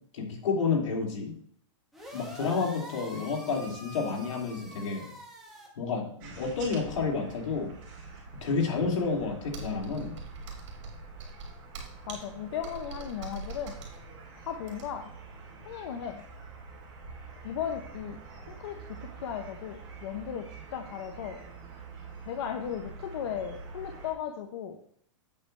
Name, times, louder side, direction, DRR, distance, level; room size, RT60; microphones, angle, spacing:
voice 1, 0.1-1.3 2.1-5.1 5.8-7.7 8.4-10.1, left 4 dB, 75° left, -1 dB, 2.9 m, -30 dB
sound 1, 1.9-5.7, equal, ahead, 1.3 m, -45 dB
sound 2, 6.2-24.1, right 4 dB, 40° right, 3.4 m, -46 dB
Computer keyboard, 9.5-15.1, right 4 dB, 60° right, 3.3 m, -43 dB
voice 2, 12.1-13.7 14.4-15.1 15.6-16.2 17.4-18.2 18.5-20.4 20.7-21.4 22.3-24.8, left 8 dB, 50° left, 4 dB, 0.8 m, -36 dB
8.6 x 7.5 x 3.3 m, 0.63 s
supercardioid pair, 165°, 16 cm